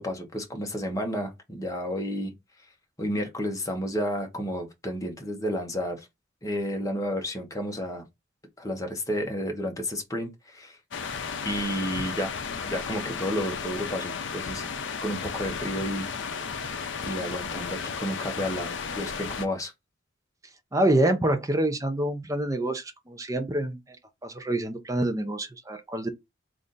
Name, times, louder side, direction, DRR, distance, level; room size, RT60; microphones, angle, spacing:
voice 1, 0.0-2.3 3.0-6.1 6.4-8.0 8.6-10.8 11.4-12.3 12.7-14.7 15.0-16.1 17.0-19.7, equal, 15° left, 0.8 m, -31 dB
sound 1, 10.9-19.5, left 5 dB, 60° left, 0.5 m, -34 dB
voice 2, 20.7-23.8 24.2-26.1, right 1 dB, 15° right, 0.6 m, -26 dB
3.3 x 2.5 x 3.9 m
head